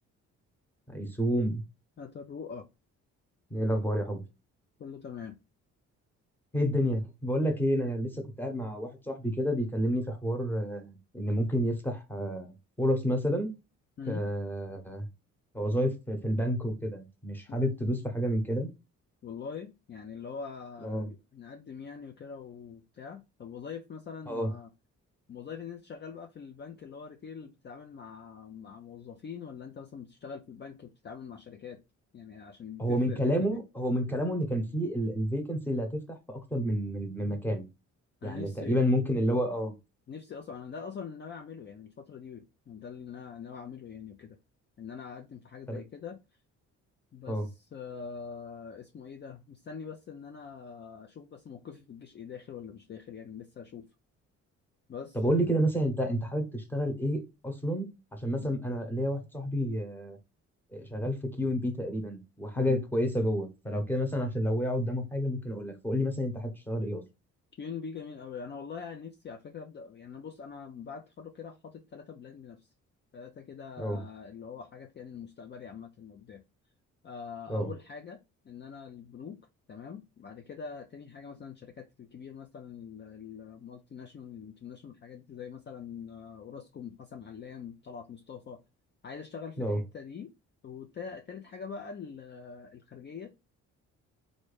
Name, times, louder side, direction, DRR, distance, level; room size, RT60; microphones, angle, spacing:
voice 1, 0.9-1.6 3.5-4.2 6.5-13.5 14.1-15.1 15.5-18.7 20.8-21.1 24.3-24.5 32.8-37.6 38.2-39.7 45.7-45.8 47.3-47.5 55.1-57.9 58.1-60.2 60.7-67.0 73.8-74.0 77.5-77.7 89.6-89.8, equal, 5° left, 1.0 m, -30 dB
voice 2, 2.0-2.7 4.8-5.4 14.0-14.3 17.5-17.6 19.2-24.7 25.3-31.8 32.1-33.6 38.2-38.9 40.1-44.4 44.8-46.2 47.1-53.9 54.9-55.2 58.4-58.5 62.6-62.8 67.6-72.7 73.1-76.4 77.0-78.2 78.4-79.4 79.7-88.6 89.0-90.3 90.6-93.3, left 6 dB, 35° left, 0.5 m, -43 dB
3.0 x 2.6 x 3.3 m
cardioid pair, 90°, 30 cm